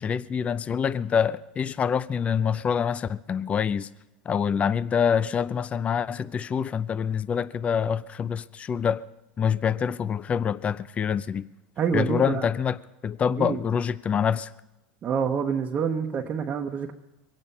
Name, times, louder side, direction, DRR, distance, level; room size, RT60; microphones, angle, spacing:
voice 1, 0.0-3.9 4.3-9.0 9.4-11.5 11.9-12.8 13.0-14.5, left 7 dB, 30° left, 0.6 m, -26 dB
voice 2, 11.8-12.5 13.4-13.6 15.0-16.9, right 6 dB, 35° right, 1.1 m, -27 dB
23.5 x 9.1 x 5.5 m
hypercardioid pair, 105°, 4 cm